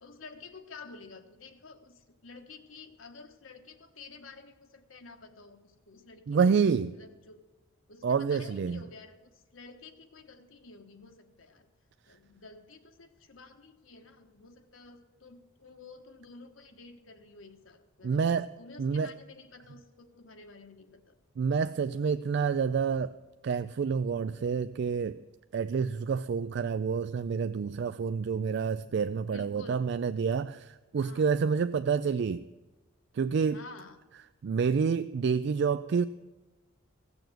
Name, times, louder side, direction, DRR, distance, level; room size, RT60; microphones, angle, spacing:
voice 1, 0.0-6.5 7.0-7.4 7.9-11.7 12.1-18.3 18.6-21.2 29.2-29.9 30.9-31.3 33.5-34.0, left 4 dB, 80° left, 1.3 m, -51 dB
voice 2, 6.3-6.9 8.0-8.8 18.0-18.5 18.8-19.1 21.4-23.2 23.4-25.2 25.5-32.4 33.1-33.6 34.4-36.1, right 6 dB, 55° right, 0.3 m, -28 dB
16.0 x 7.0 x 7.8 m
head